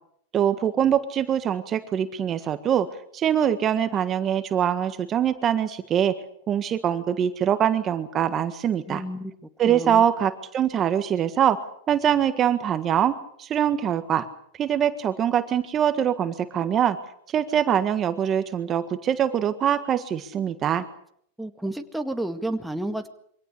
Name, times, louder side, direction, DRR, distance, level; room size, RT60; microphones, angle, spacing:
voice 1, 0.3-2.9 3.1-6.1 6.5-9.0 9.6-11.6 11.9-14.2 14.6-17.0 17.3-20.8, right 9 dB, 30° right, 10 dB, 1.6 m, -23 dB
voice 2, 8.9-9.3 9.7-10.0 21.4-23.1, right 1 dB, ahead, 5 dB, 2.0 m, -30 dB
24.0 x 17.5 x 8.4 m, 0.67 s
hypercardioid pair, 125°, 0 cm